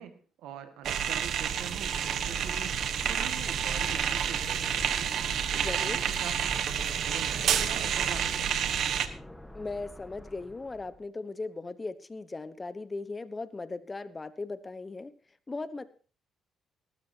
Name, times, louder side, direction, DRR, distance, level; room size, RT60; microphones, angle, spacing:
voice 1, 0.0-5.2 5.5-6.4 6.9-8.7, right 9 dB, 90° right, 8 dB, 1.9 m, -44 dB
sound 1, 0.8-9.1, right 8 dB, 70° right, 1.2 m, -29 dB
sound 2, 1.2-11.0, left 1 dB, 5° left, 1.6 m, -45 dB
voice 2, 5.5-6.0 9.5-15.1 15.5-15.8, left 3 dB, 25° left, 13 dB, 1.1 m, -38 dB
18.5 x 14.0 x 2.9 m, 0.38 s
cardioid pair, 90°, 0 cm